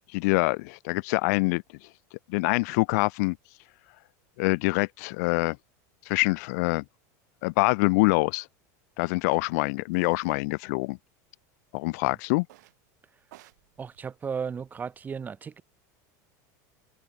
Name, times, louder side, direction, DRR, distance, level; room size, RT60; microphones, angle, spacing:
voice 1, 0.1-1.6 2.3-3.4 4.4-5.6 6.1-6.8 7.4-8.5 9.0-11.0 11.7-12.5, left 27 dB, 65° left, 0.3 m, -25 dB
sound 1, 9.3-9.4 9.9-10.4 10.7-11.4 12.4-12.8 13.2-15.0, right 18 dB, 80° right, 2.1 m, -57 dB
voice 2, 11.9-12.2 13.8-15.6, right 6 dB, 20° right, 1.3 m, -35 dB
supercardioid pair, 145°, 9 cm